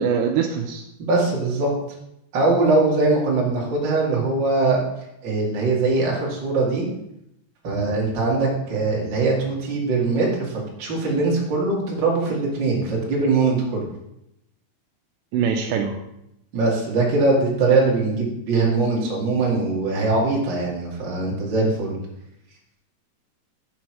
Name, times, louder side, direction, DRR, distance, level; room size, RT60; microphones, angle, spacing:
voice 1, 0.0-0.8 15.3-16.0, right 7 dB, 80° right, 3 dB, 2.6 m, -23 dB
voice 2, 1.0-1.7 2.3-4.8 5.2-6.9 7.6-13.8 16.5-21.9, right 3 dB, 45° right, -4 dB, 1.5 m, -21 dB
6.3 x 6.1 x 5.9 m, 0.81 s
omnidirectional pair, 5.4 m